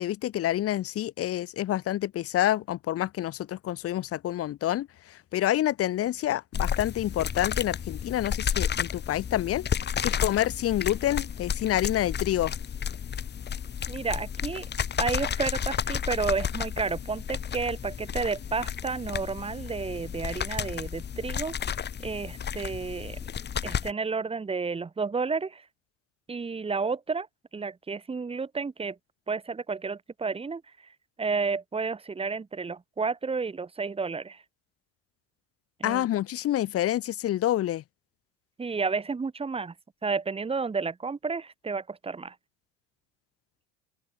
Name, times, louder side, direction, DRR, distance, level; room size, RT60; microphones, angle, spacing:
voice 1, 0.0-9.7 10.0-12.5 35.8-37.8, left 13 dB, 50° left, 2.8 m, -28 dB
sound 1, 6.5-23.9, left 8 dB, 35° left, 2.6 m, -32 dB
voice 2, 13.9-14.7 15.0-21.5 22.0-23.2 23.6-25.6 26.3-27.3 27.5-29.0 29.3-30.6 31.2-34.4 35.8-36.1 38.6-39.7 40.0-42.3, right 4 dB, 20° right, 2.1 m, -31 dB
open air
supercardioid pair, 85°, 29 cm